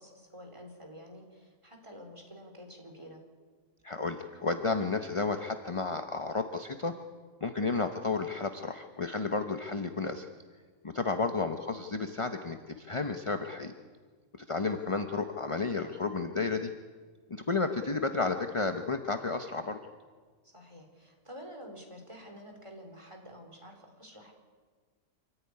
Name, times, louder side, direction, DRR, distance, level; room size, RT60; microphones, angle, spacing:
voice 1, 0.0-3.2 11.1-11.4 20.5-24.3, equal, 20° right, 2 dB, 4.2 m, -49 dB
voice 2, 3.8-7.0 7.4-10.3 10.8-13.7 14.5-16.7 17.3-19.8, left 4 dB, 25° left, 7 dB, 0.9 m, -32 dB
27.0 x 14.5 x 9.8 m, 1.5 s
omnidirectional pair, 1.5 m